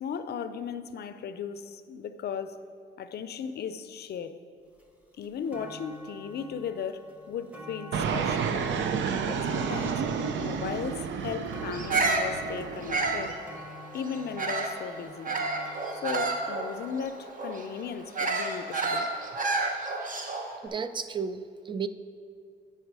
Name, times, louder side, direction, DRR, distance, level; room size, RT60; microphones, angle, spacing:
voice 1, 0.0-2.6 3.0-4.4 5.2-8.6 9.2-10.0 10.4-13.3 13.9-15.3 16.0-19.1, left 7 dB, 55° left, 11 dB, 0.5 m, -36 dB
sound 1, 4.8-4.9 5.2-18.4 19.2-19.3, left 1 dB, 5° right, 1.1 m, -48 dB
Fixed-wing aircraft airplane, 7.9-13.3, right 6 dB, 70° right, 0.6 m, -31 dB
Bird vocalization bird call bird song, 11.7-14.8 15.2-20.5, right 3 dB, 40° right, 1.0 m, -30 dB
voice 2, 20.6-21.9, right 6 dB, 25° right, 12 dB, 0.4 m, -33 dB
8.9 x 5.7 x 4.7 m, 2.3 s
cardioid pair, 90°, 20 cm